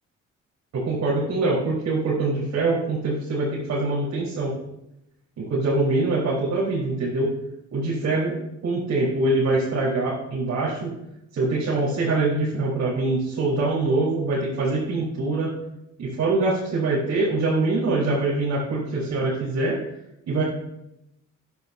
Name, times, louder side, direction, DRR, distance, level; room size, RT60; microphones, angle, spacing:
voice 1, 0.7-4.5 5.4-7.3 7.7-8.3 8.6-10.9 11.3-15.5 16.0-19.8 20.3-20.4, right 2 dB, 70° right, -7 dB, 4.1 m, -24 dB
13.0 x 10.5 x 2.7 m, 0.85 s
cardioid pair, 90°, 30 cm